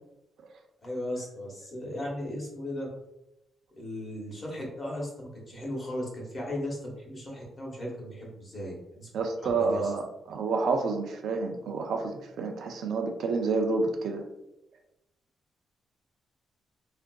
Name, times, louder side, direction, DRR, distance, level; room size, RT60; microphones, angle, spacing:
voice 1, 0.8-2.9 3.8-9.1 9.4-9.9, left 1 dB, 25° left, -3 dB, 0.9 m, -36 dB
voice 2, 9.1-14.3, right 4 dB, 65° right, 4 dB, 0.4 m, -29 dB
3.5 x 2.4 x 2.2 m, 0.88 s
wide cardioid pair, 165°, 0 cm